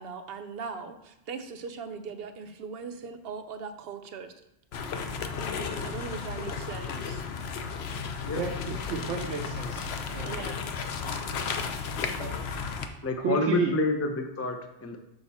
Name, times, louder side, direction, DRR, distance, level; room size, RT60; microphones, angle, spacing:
voice 1, 0.0-4.3 5.6-7.2 8.3-8.4 10.2-10.6 11.2-11.7, right 5 dB, 60° right, 8 dB, 0.8 m, -40 dB
sound 1, 4.7-12.9, left 5 dB, 65° left, 0.9 m, -34 dB
voice 2, 8.3-10.3 12.2-12.4 13.2-13.8, right 4 dB, 85° right, 1 dB, 1.0 m, -32 dB
voice 3, 13.0-15.0, left 2 dB, 20° left, 5 dB, 0.4 m, -28 dB
6.3 x 5.3 x 4.2 m, 0.85 s
omnidirectional pair, 1.2 m